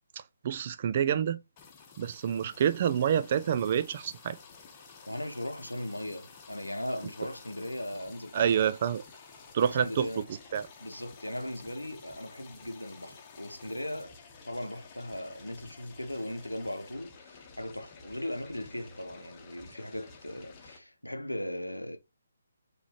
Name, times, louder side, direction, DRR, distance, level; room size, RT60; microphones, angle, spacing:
voice 1, 0.4-1.4 2.0-4.4 8.3-9.0 9.5-10.1 10.5-10.7, right 8 dB, 35° right, 0.4 m, -27 dB
sound 1, 1.6-20.8, left 5 dB, 25° left, 1.0 m, -52 dB
voice 2, 5.1-8.5 9.6-10.3 10.8-14.2 14.4-22.0, left 1 dB, 85° left, 0.8 m, -38 dB
4.6 x 3.1 x 2.9 m
figure-of-eight pair, 140°, 0 cm